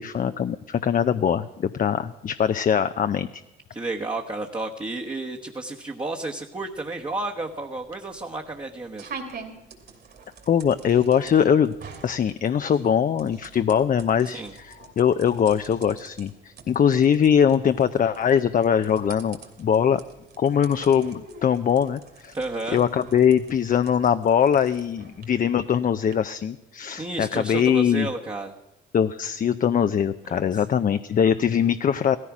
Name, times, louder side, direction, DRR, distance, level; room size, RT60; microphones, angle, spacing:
voice 1, 0.0-3.4 10.5-11.7 12.0-20.0 20.4-22.3 22.7-28.1 28.9-32.2, left 8 dB, 45° left, 10 dB, 0.6 m, -22 dB
voice 2, 3.7-9.1 14.3-14.5 22.3-22.8 27.0-28.5 30.3-30.4, right 2 dB, 25° right, 0 dB, 1.2 m, -31 dB
sound 1, 6.6-26.1, right 5 dB, 55° right, 2.9 m, -46 dB
16.5 x 14.0 x 6.0 m, 0.96 s
cardioid pair, 90°, 20 cm